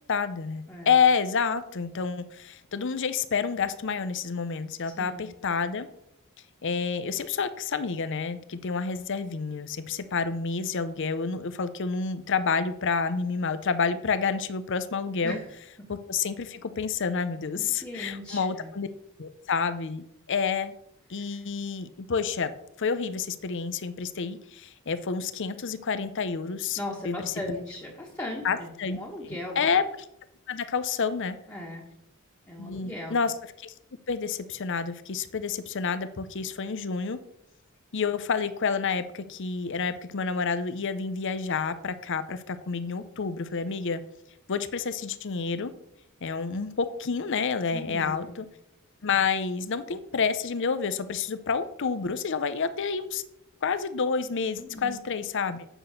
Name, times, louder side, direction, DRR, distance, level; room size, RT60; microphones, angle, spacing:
voice 1, 0.1-5.9 6.6-15.4 15.9-18.9 19.2-20.7 21.1-22.5 22.8-26.8 27.0-27.3 28.4-29.0 29.3-29.8 30.5-31.4 32.6-33.7 34.1-37.2 37.9-44.0 44.5-45.7 46.2-48.5 49.0-53.2 53.6-55.7, left 5 dB, 55° left, 12 dB, 0.6 m, -29 dB
voice 2, 4.8-5.3 15.2-15.5 17.5-18.7 21.3-21.5 26.8-29.6 31.5-31.9 32.5-33.2 47.7-48.4 54.6-55.0, left 1 dB, 15° left, -5 dB, 1.6 m, -38 dB
8.0 x 6.1 x 6.7 m, 0.78 s
head